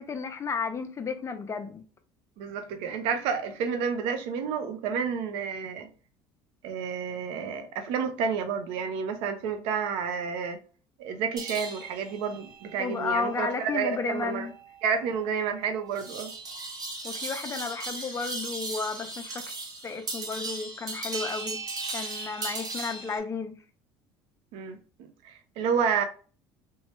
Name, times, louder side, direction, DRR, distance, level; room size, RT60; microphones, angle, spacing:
voice 1, 0.0-1.8 12.8-14.5 17.0-19.4 19.8-21.6 21.9-23.5, left 5 dB, 30° left, 0.6 m, -33 dB
voice 2, 2.4-5.9 6.6-10.6 11.0-14.5 14.8-16.3 24.5-26.0, right 6 dB, 75° right, 0.6 m, -30 dB
sound 1, 11.4-23.2, right 3 dB, 40° right, 0.9 m, -38 dB
3.0 x 2.3 x 3.0 m
supercardioid pair, 95°, 10 cm